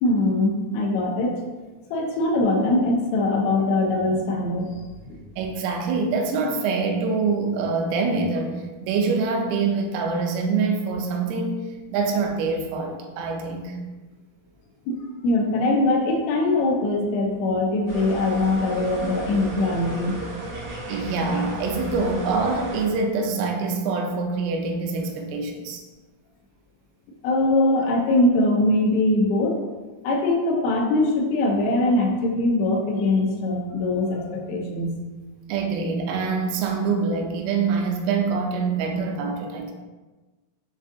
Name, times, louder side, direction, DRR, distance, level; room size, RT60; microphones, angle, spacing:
voice 1, 0.0-1.3 1.9-4.7 5.1-5.2 14.9-20.1 27.2-29.6 30.0-35.0, left 2 dB, 90° left, -1 dB, 2.3 m, -22 dB
voice 2, 5.4-8.6 8.8-11.6 11.9-13.8 20.9-25.8 35.5-39.7, right 4 dB, 85° right, 2 dB, 3.1 m, -25 dB
sound 1, 17.9-22.9, right 1 dB, 70° right, 2.1 m, -35 dB
7.1 x 2.4 x 2.6 m, 1.2 s
omnidirectional pair, 5.6 m